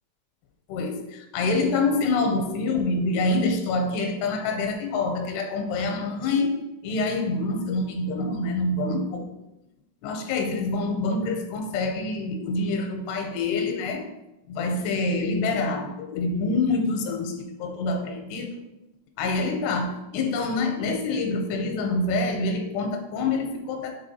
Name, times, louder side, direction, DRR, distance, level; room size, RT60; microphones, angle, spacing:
voice 1, 0.7-9.3 10.0-14.1 14.5-18.6 19.2-24.0, left 3 dB, 85° left, 5 dB, 2.7 m, -26 dB
7.4 x 3.3 x 4.0 m, 0.93 s
omnidirectional pair, 4.8 m